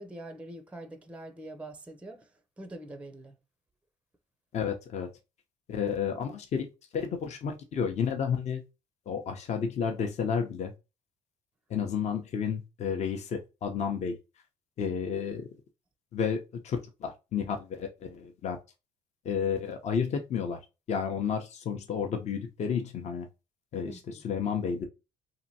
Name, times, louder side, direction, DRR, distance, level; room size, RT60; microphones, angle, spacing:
voice 1, 0.0-2.3 2.6-3.4 23.8-24.3, right 1 dB, 10° right, 0.5 m, -44 dB
voice 2, 4.5-5.1 5.7-8.6 9.1-10.7 11.7-14.2 14.8-15.5 16.1-16.4 16.6-18.6 19.2-20.6 20.9-23.3 23.7-24.9, left 7 dB, 50° left, 0.7 m, -31 dB
2.8 x 2.6 x 2.7 m
supercardioid pair, 75°, 15 cm